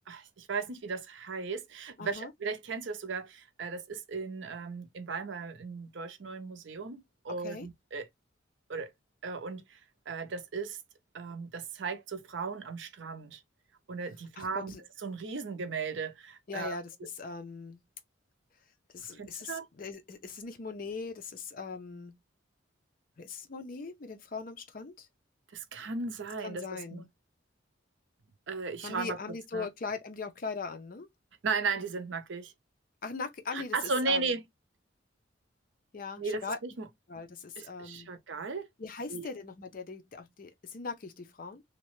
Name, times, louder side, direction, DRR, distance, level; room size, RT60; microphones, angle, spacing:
voice 1, 0.1-8.1 8.7-8.9 9.2-9.8 10.1-10.8 11.1-13.4 13.9-14.7 15.0-16.8 19.1-19.7 25.5-27.1 28.5-29.2 29.5-29.7 31.4-32.5 33.5-34.4 36.2-36.9 37.6-38.7 39.1-39.3, right 4 dB, 70° right, 0.5 m, -36 dB
voice 2, 2.0-2.3 7.4-7.7 14.4-14.8 16.5-17.8 18.9-22.2 23.2-25.1 26.4-27.0 28.8-31.1 33.0-33.8 34.1-34.4 35.9-36.6 37.1-38.1 38.8-41.6, left 4 dB, 45° left, 0.5 m, -40 dB
2.8 x 2.1 x 3.0 m
head